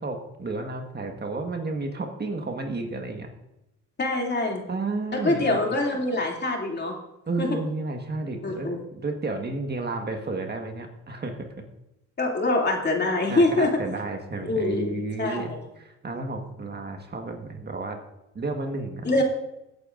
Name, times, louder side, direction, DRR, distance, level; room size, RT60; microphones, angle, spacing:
voice 1, 0.0-3.3 4.7-5.6 7.3-11.5 13.3-18.0 18.3-19.1, right 3 dB, 35° right, 4 dB, 1.5 m, -32 dB
voice 2, 4.0-4.6 5.1-6.9 7.4-7.5 8.4-8.8 12.2-13.7 14.4-15.6 19.0-19.2, left 2 dB, 35° left, 0 dB, 2.7 m, -24 dB
18.0 x 9.4 x 2.6 m, 0.91 s
cardioid pair, 90°, 30 cm